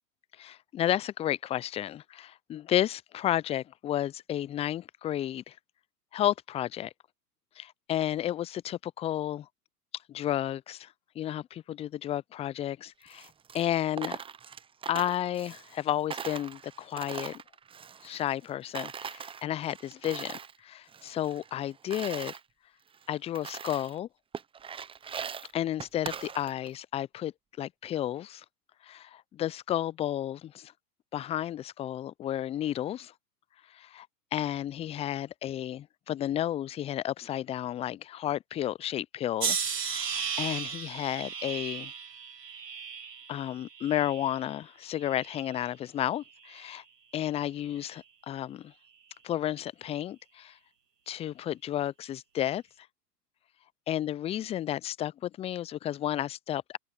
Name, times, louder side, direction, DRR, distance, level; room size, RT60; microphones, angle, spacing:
voice 1, 0.4-5.6 6.1-6.9 7.6-9.5 10.1-14.2 14.9-17.4 18.0-22.3 23.1-24.1 25.5-28.4 28.8-30.7 31.1-33.1 33.7-41.9 43.3-46.8 47.1-48.7 49.2-50.6 51.1-52.6 53.9-56.8, left 12 dB, 15° left, 0.5 m, -32 dB
Coin (dropping), 13.0-15.8 16.1-18.5 18.7-20.6 20.9-22.4 22.9-23.0 23.3-24.0 24.3-26.8, right 7 dB, 10° right, 0.8 m, -41 dB
sound 1, 39.4-44.6 45.0-45.7 46.4-46.7, right 6 dB, 80° right, 2.1 m, -35 dB
open air
figure-of-eight pair, 100°, 48 cm